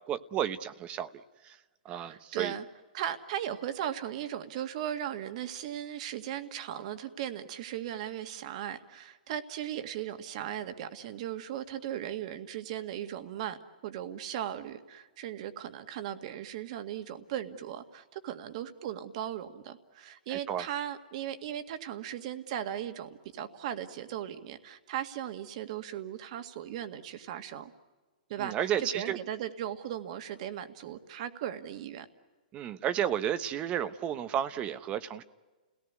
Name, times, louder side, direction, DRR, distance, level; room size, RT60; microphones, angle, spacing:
voice 1, 0.1-1.1 1.4-1.6 1.8-2.5 20.3-20.6 28.4-29.2 32.5-35.2, right 10 dB, 25° right, 13 dB, 0.9 m, -32 dB
voice 2, 1.9-2.7 2.9-13.6 13.8-27.7 28.3-32.1, right 10 dB, 50° right, 10 dB, 1.9 m, -37 dB
30.0 x 18.5 x 9.5 m, 1.3 s
hypercardioid pair, 150°, 5 cm